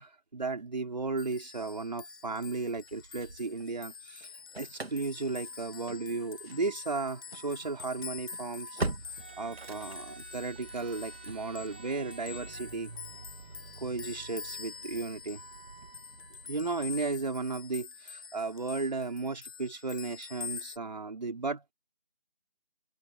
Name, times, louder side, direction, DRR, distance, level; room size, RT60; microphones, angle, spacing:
voice 1, 0.0-4.3 4.6-8.8 9.4-12.9 13.8-15.4 16.4-21.7, right 3 dB, 45° right, 4.3 m, -35 dB
sound 1, 1.2-20.8, left 6 dB, 20° left, 7.7 m, -46 dB
Engine starting / Slam, 2.5-3.9 4.2-17.3, right 2 dB, 75° right, 2.6 m, -44 dB
sound 2, 9.0-14.1, right 5 dB, 10° right, 1.7 m, -50 dB
figure-of-eight pair, 170°, 31 cm